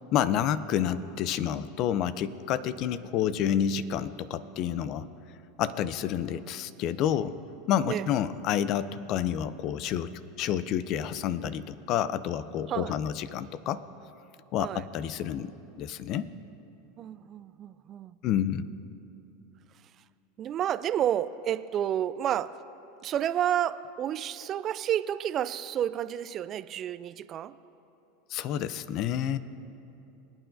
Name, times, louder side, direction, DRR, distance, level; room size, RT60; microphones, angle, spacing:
voice 1, 0.1-5.1 5.6-7.3 7.7-13.8 14.5-16.3 18.2-18.7 28.3-29.4, left 9 dB, 50° left, 16 dB, 0.5 m, -29 dB
voice 2, 17.0-18.1 20.4-22.6 23.0-27.5, right 10 dB, 40° right, 15 dB, 0.4 m, -30 dB
23.0 x 8.9 x 2.6 m, 2.8 s
hypercardioid pair, 95°, 0 cm